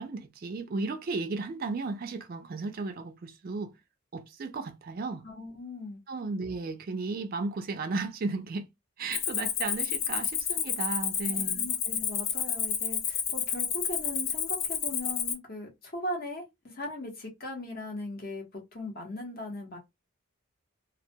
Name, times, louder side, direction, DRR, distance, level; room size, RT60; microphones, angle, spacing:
voice 1, 0.0-3.8 4.1-5.2 6.1-8.7 9.0-11.7, right 3 dB, 45° right, 0.3 m, -34 dB
voice 2, 5.2-6.0 11.3-19.8, left 1 dB, 45° left, 0.8 m, -39 dB
Cricket, 9.1-15.3, left 8 dB, 70° left, 0.5 m, -30 dB
2.1 x 2.1 x 2.7 m
head